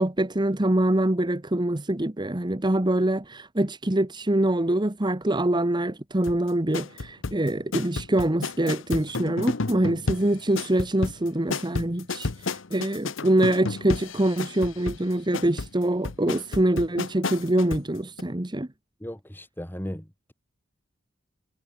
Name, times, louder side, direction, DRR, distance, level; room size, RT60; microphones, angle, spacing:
voice 1, 0.0-18.7, right 1 dB, 25° right, 1.2 m, -24 dB
sound 1, 6.2-17.9 18.2-18.3, left 3 dB, 85° left, 1.0 m, -32 dB
voice 2, 19.0-20.3, equal, 10° left, 3.5 m, -36 dB
head